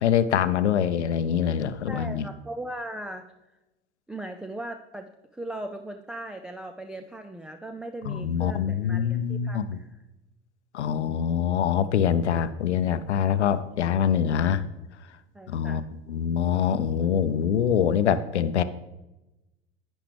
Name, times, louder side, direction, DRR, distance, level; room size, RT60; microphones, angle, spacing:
voice 1, 0.0-2.3 8.0-9.8 10.7-14.7 15.5-18.6, left 8 dB, 85° left, 13 dB, 0.6 m, -24 dB
voice 2, 1.9-3.3 4.1-10.0 14.0-14.4 15.3-15.9, right 1 dB, ahead, 7 dB, 0.3 m, -38 dB
10.5 x 9.0 x 3.4 m, 1.0 s
hypercardioid pair, 80°, 33 cm